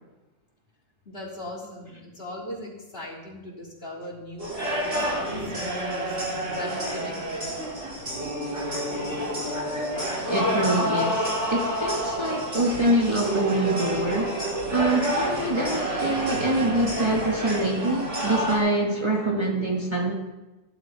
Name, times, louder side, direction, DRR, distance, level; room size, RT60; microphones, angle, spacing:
voice 1, 1.1-7.6, left 1 dB, 50° left, -3 dB, 3.7 m, -39 dB
sound 1, 4.4-18.6, right 1 dB, 70° right, 4.8 m, -28 dB
voice 2, 10.3-14.4 14.7-20.1, right 1 dB, 20° right, -1 dB, 1.7 m, -25 dB
15.5 x 11.5 x 4.7 m, 1.1 s
omnidirectional pair, 1.3 m